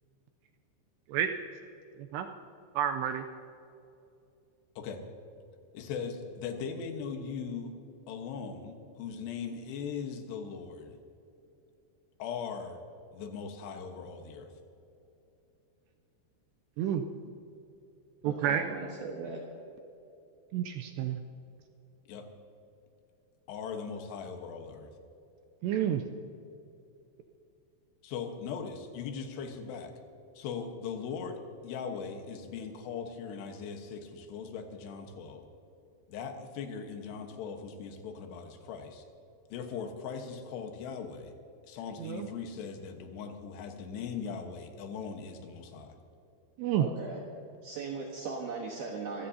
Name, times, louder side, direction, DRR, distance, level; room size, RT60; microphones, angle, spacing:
voice 1, 1.9-2.3 2.8-3.3 16.8-17.0 18.2-18.7 20.5-21.2 25.6-26.0 42.0-42.3 46.6-46.9, right 10 dB, 80° right, 5 dB, 2.5 m, -29 dB
voice 2, 5.7-7.8 8.1-11.0 12.2-12.8 13.1-14.5 22.1-22.2 23.5-24.9 28.0-29.9 30.4-35.4 36.1-39.0 39.5-41.3 41.6-46.0, left 6 dB, 70° left, 4 dB, 3.2 m, -39 dB
voice 3, 18.2-19.4 46.8-47.2 47.6-49.3, right 4 dB, 65° right, -1 dB, 2.7 m, -38 dB
25.5 x 15.5 x 2.8 m, 2.8 s
omnidirectional pair, 5.4 m